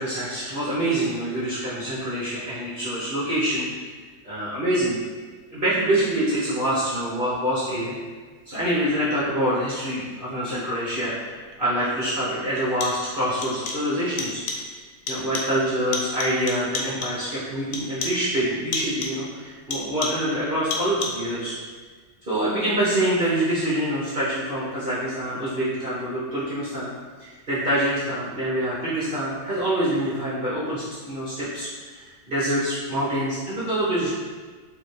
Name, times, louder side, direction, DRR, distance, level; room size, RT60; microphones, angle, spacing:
voice 1, 0.0-3.9 4.2-5.0 5.5-8.0 8.5-14.4 15.1-21.5 22.3-26.9 27.2-34.1, right 1 dB, 60° right, -10 dB, 0.5 m, -26 dB
sound 1, 11.5-11.6 12.6-13.1 13.4-13.9 14.2-14.7 15.1-15.6 15.9-17.3 17.7-18.3 18.7-19.3 19.7-20.4 20.7-21.3, left 4 dB, 80° left, 0.8 m, -32 dB
4.8 x 2.7 x 3.1 m, 1.5 s
omnidirectional pair, 2.2 m